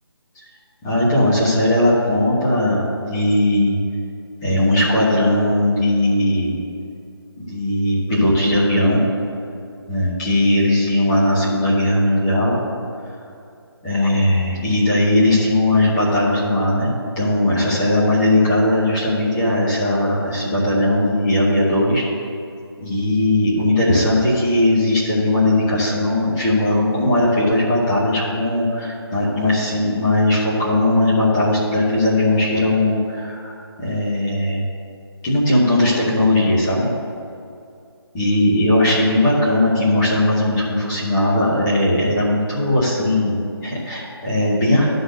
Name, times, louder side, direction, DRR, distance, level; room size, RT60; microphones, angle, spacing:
voice 1, 0.8-3.8 4.4-6.6 7.4-9.0 9.9-12.6 13.8-16.9 17.2-22.0 22.8-34.7 35.2-36.9 38.1-44.9, left 1 dB, 10° left, -7 dB, 0.9 m, -18 dB
11.5 x 4.0 x 6.5 m, 2.5 s
figure-of-eight pair, 170°, 14 cm